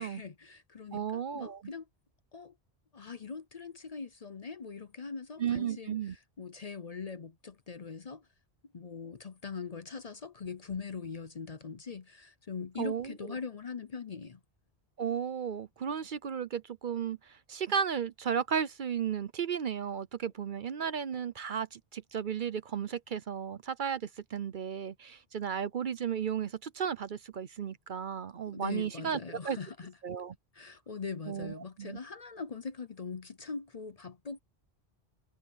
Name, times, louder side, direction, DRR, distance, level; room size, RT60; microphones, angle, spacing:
voice 1, 0.0-1.9 2.3-2.5 2.9-8.3 8.7-14.4 28.5-29.9 30.5-34.4, left 5 dB, 40° left, 0.7 m, -42 dB
voice 2, 0.9-1.6 5.4-6.2 12.8-13.1 15.0-29.2 29.4-29.6 30.0-30.4 31.3-32.0, right 8 dB, 55° right, 0.8 m, -34 dB
omnidirectional pair, 1.1 m